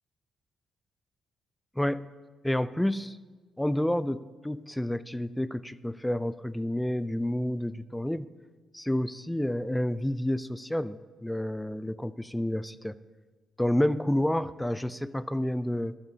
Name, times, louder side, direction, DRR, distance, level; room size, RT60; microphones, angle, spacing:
voice 1, 1.8-2.1 2.4-3.2 3.6-8.3 8.7-12.9 13.6-16.0, left 1 dB, 5° left, 16 dB, 0.3 m, -29 dB
14.0 x 12.0 x 2.8 m, 1.4 s
cardioid pair, 90°, 0 cm